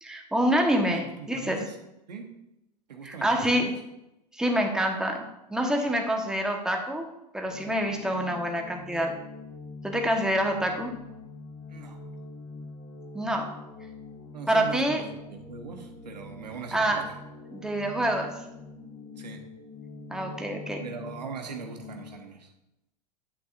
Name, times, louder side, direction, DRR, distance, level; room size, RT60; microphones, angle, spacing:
voice 1, 0.0-1.6 3.0-3.7 4.3-5.2 5.5-7.1 7.3-9.2 9.8-10.9 13.1-13.5 14.5-15.0 16.7-17.0 17.5-18.4 20.1-20.8, right 1 dB, 5° right, 2 dB, 1.4 m, -26 dB
voice 2, 0.9-1.8 2.1-2.3 2.9-3.8 11.7-12.0 12.6-12.7 14.3-17.0 19.2-19.4 20.3-20.4 20.8-22.5, right 6 dB, 80° right, 4 dB, 1.2 m, -41 dB
sound 1, 7.4-22.2, left 3 dB, 45° left, 2.0 m, -44 dB
9.7 x 8.4 x 2.6 m, 0.88 s
figure-of-eight pair, 90°, 21 cm